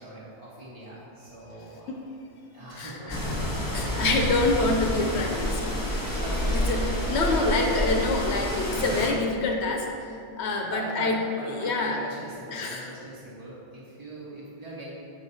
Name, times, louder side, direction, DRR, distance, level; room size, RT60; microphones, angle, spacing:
voice 1, 0.0-1.9 2.5-4.5 5.8-7.4 10.6-14.9, right 1 dB, 30° right, -7 dB, 0.9 m, -41 dB
voice 2, 2.8-3.2 3.7-5.7 6.5-11.2 11.5-12.0 12.5-12.9, left 2 dB, 70° left, 1 dB, 0.9 m, -26 dB
sound 1, 3.1-9.1, equal, 20° left, 1.1 m, -28 dB
6.9 x 3.1 x 5.3 m, 2.5 s
omnidirectional pair, 1.2 m